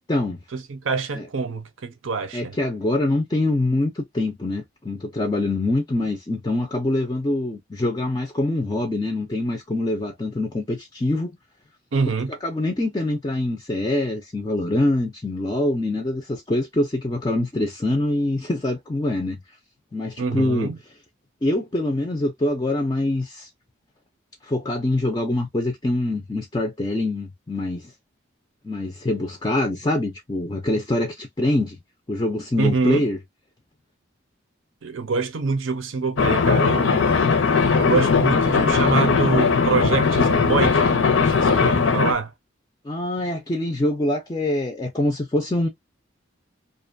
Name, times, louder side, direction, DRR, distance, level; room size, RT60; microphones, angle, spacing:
voice 1, 0.5-2.6 11.9-12.3 20.2-20.8 32.6-33.1 34.8-37.1 37.7-40.9 41.3-42.3, right 4 dB, 75° right, 0.6 m, -25 dB
voice 2, 2.3-11.4 12.3-19.4 19.9-20.7 21.4-23.5 24.4-27.9 28.6-31.8 32.1-33.2 42.8-45.7, left 1 dB, 20° left, 0.3 m, -24 dB
sound 1, 36.2-42.1, left 5 dB, 75° left, 0.6 m, -19 dB
2.5 x 2.2 x 2.5 m
head